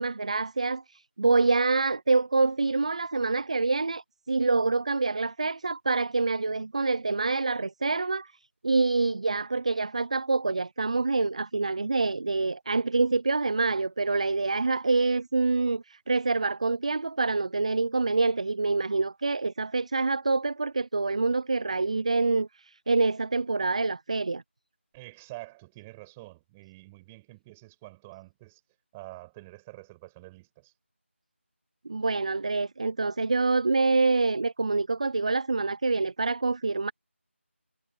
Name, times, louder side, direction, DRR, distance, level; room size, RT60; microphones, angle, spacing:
voice 1, 0.0-8.3 8.6-24.4 31.9-36.9, right 3 dB, 30° right, 0.5 m, -26 dB
voice 2, 24.9-28.6 28.9-30.7, right 21 dB, 10° right, 7.5 m, -47 dB
figure-of-eight pair, 175°, 7 cm